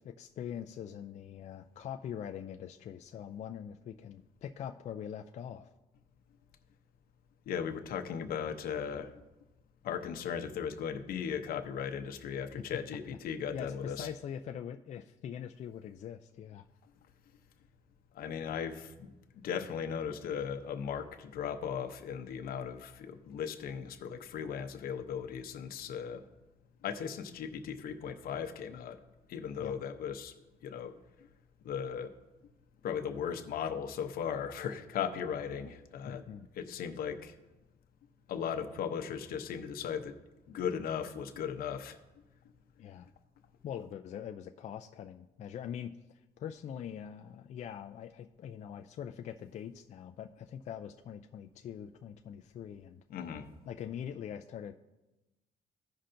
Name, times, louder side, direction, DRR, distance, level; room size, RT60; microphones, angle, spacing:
voice 1, 0.0-5.7 13.5-16.7 29.6-29.8 36.1-36.5 42.8-43.1 43.6-53.0 53.7-54.7, left 9 dB, 50° left, 6 dB, 0.4 m, -43 dB
voice 2, 7.5-9.2 9.8-14.1 18.1-19.1 19.3-26.3 26.8-29.0 29.3-30.4 30.6-31.3 31.6-32.1 32.8-36.2 36.5-37.4 38.3-40.2 40.5-42.0 53.1-53.5, left 7 dB, 70° left, 7 dB, 0.8 m, -37 dB
16.0 x 5.5 x 2.6 m, 1.1 s
cardioid pair, 130°, 16 cm